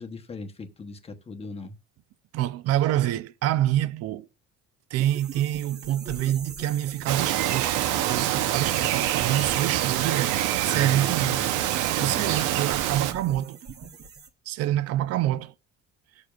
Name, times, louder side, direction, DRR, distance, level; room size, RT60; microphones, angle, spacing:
voice 1, 0.0-1.8 10.7-11.5 12.0-12.3, left 3 dB, 20° left, 0.9 m, -39 dB
voice 2, 2.3-4.3 4.9-13.9 14.5-15.5, right 13 dB, 55° right, 0.5 m, -27 dB
sound 1, 5.0-14.3, right 5 dB, 35° right, 1.0 m, -42 dB
Bird vocalization bird call bird song, 7.1-13.1, right 12 dB, 90° right, 0.8 m, -25 dB
18.5 x 6.8 x 2.4 m
cardioid pair, 160°, 29 cm